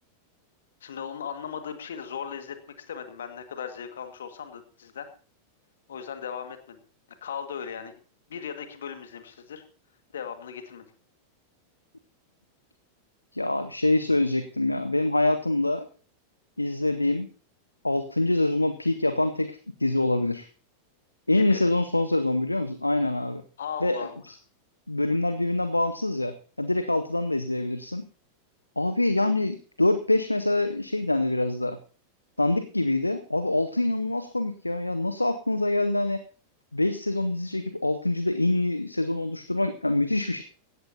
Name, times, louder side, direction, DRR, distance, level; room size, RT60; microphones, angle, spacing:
voice 1, 0.8-2.6 2.9-5.1 5.9-6.8 7.2-7.9 8.3-9.6 10.1-10.9 21.3-21.6 23.6-24.2, left 7 dB, 65° left, 8 dB, 2.0 m, -37 dB
voice 2, 13.3-15.8 16.6-17.3 17.8-20.5 21.3-23.4 23.8-24.4 24.9-28.1 28.8-31.8 32.4-36.2 36.7-40.4, left 2 dB, 85° left, 11 dB, 0.8 m, -25 dB
17.0 x 13.5 x 2.8 m, 0.39 s
figure-of-eight pair, 90°, 0 cm